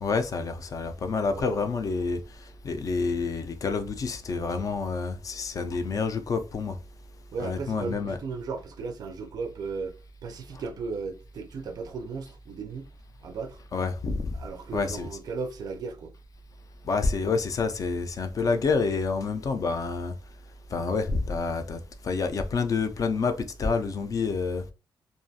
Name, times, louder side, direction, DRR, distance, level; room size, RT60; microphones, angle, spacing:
voice 1, 0.0-2.2 2.6-6.8 7.4-8.2 13.7-14.3 14.7-15.1 16.8-20.1 20.7-21.8 22.0-24.6, left 4 dB, 45° left, 0.4 m, -28 dB
voice 2, 1.3-1.7 7.3-9.9 10.2-12.8 13.2-13.6 14.3-16.1 18.4-18.6, right 4 dB, 50° right, 0.3 m, -36 dB
2.4 x 2.2 x 2.6 m
wide cardioid pair, 140°, 8 cm